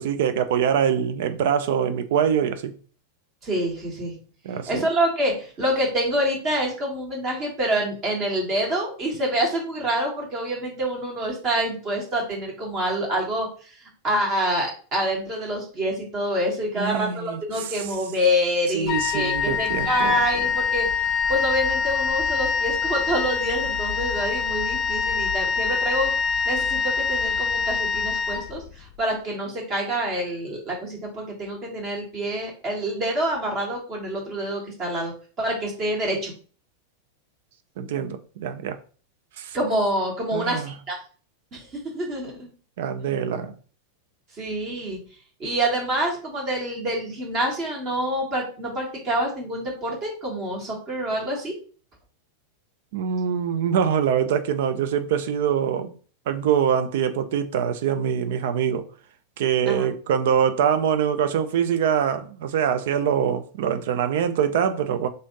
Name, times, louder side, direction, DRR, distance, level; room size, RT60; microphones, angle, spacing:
voice 1, 0.0-2.7 4.4-4.9 16.8-17.7 18.7-20.2 37.8-38.8 39.4-39.6 40.3-40.7 42.8-43.5 52.9-55.9 56.3-58.8 59.4-65.1, right 8 dB, 55° right, 0.4 m, -24 dB
voice 2, 3.4-4.1 4.7-13.7 14.0-20.9 21.3-26.1 26.4-35.1 35.4-36.3 39.5-41.0 41.5-42.5 44.4-45.0 45.4-51.5 59.7-59.9, right 1 dB, 30° right, 1.6 m, -26 dB
Wind instrument woodwind instrument, 18.9-29.0, left 6 dB, 40° left, 0.4 m, -25 dB
3.4 x 2.7 x 3.8 m
figure-of-eight pair, 90°, 0 cm